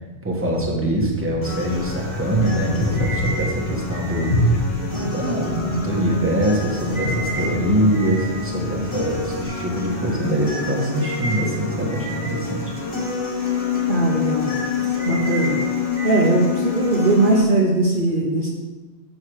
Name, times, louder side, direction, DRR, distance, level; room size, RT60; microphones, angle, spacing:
voice 1, 0.2-12.7 15.8-16.0, right 1 dB, 10° right, -2 dB, 1.3 m, -23 dB
sound 1, 0.5-9.5, left 1 dB, 60° left, 1.0 m, -28 dB
sound 2, 1.4-17.4, left 5 dB, 25° left, 1.4 m, -27 dB
voice 2, 13.9-15.6 16.0-18.5, right 2 dB, 50° right, -1 dB, 1.0 m, -20 dB
6.6 x 4.8 x 6.3 m, 1.2 s
omnidirectional pair, 1.2 m